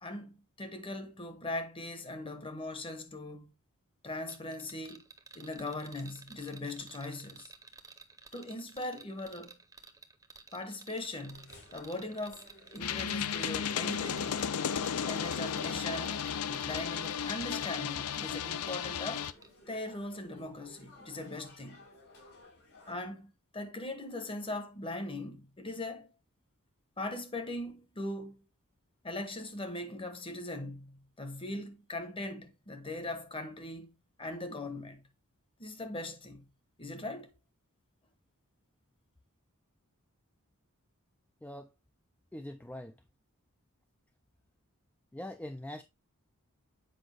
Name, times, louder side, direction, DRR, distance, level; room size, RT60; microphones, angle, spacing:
voice 1, 0.0-3.6 4.0-5.0 5.3-7.5 8.3-9.6 10.5-14.4 14.9-19.3 19.7-21.8 22.9-26.1 27.0-28.4 29.0-35.0 35.6-36.4 36.8-37.3, left 2 dB, 25° left, 1.1 m, -40 dB
sound 1, 4.3-19.0 19.2-19.5, right 4 dB, 15° right, 0.8 m, -52 dB
sound 2, 11.3-22.9, left 2 dB, 65° left, 5.4 m, -57 dB
sound 3, 12.8-19.3, left 8 dB, 85° left, 0.5 m, -34 dB
voice 2, 42.3-42.9 45.1-45.8, left 1 dB, 5° left, 0.4 m, -42 dB
7.9 x 5.1 x 3.4 m
head